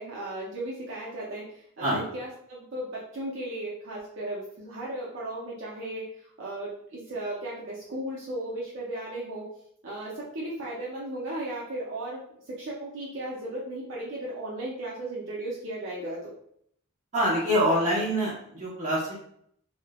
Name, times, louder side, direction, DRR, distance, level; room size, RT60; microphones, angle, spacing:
voice 1, 0.0-6.1 6.4-9.5 9.8-12.2 12.6-16.3, right 1 dB, 60° right, -6 dB, 0.5 m, -35 dB
voice 2, 17.1-19.1, equal, 35° right, -6 dB, 1.0 m, -25 dB
3.0 x 2.0 x 2.3 m, 0.67 s
head